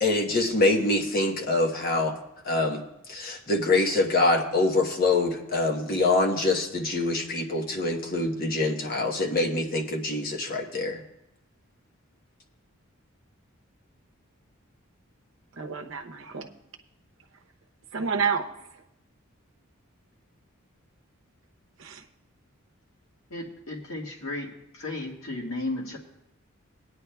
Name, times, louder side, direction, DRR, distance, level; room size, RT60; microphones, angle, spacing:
voice 1, 0.0-2.1 2.4-2.8 3.1-11.0, left 2 dB, 45° left, 3 dB, 1.0 m, -25 dB
voice 2, 15.5-16.5 17.9-18.8 21.8-22.1, right 6 dB, 65° right, 4 dB, 0.7 m, -30 dB
voice 3, 23.3-24.5 24.7-26.0, left 2 dB, 75° left, -1 dB, 1.6 m, -34 dB
18.5 x 9.7 x 2.3 m, 0.84 s
head